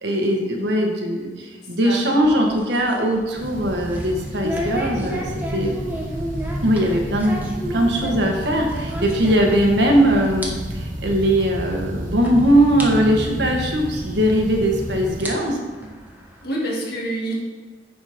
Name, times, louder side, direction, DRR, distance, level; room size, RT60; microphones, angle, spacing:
voice 1, 0.0-5.2 5.5-5.8 6.6-15.6, equal, 65° right, 1 dB, 1.4 m, -20 dB
voice 2, 1.8-2.5 16.4-17.3, right 1 dB, 60° left, -3 dB, 2.0 m, -28 dB
sound 1, 2.1-9.9 10.2-10.5 10.8-10.9 11.7-11.8 12.2-12.3 12.8-12.9 14.2-14.3 15.0-16.4, right 1 dB, 10° right, 1.1 m, -33 dB
sound 2, 3.3-15.2, right 1 dB, 45° right, 1.1 m, -31 dB
9.1 x 4.3 x 5.0 m, 1.4 s
head